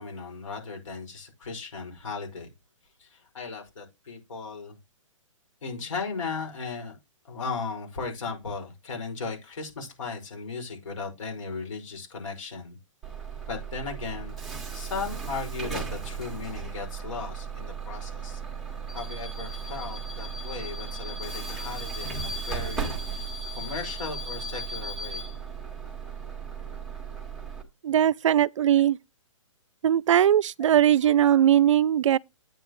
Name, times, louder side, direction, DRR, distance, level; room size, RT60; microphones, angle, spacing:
voice 1, 0.0-2.5 3.0-4.7 5.6-7.0 7.3-12.8 13.5-18.4 18.9-23.3 23.6-25.3 31.9-32.2, left 4 dB, 70° left, 5.2 m, -36 dB
Bus / Alarm, 13.0-27.6, right 4 dB, ahead, 1.7 m, -35 dB
voice 2, 27.8-29.0 29.8-32.2, right 10 dB, 65° right, 0.4 m, -20 dB
9.6 x 8.9 x 3.1 m
hypercardioid pair, 150°, 17 cm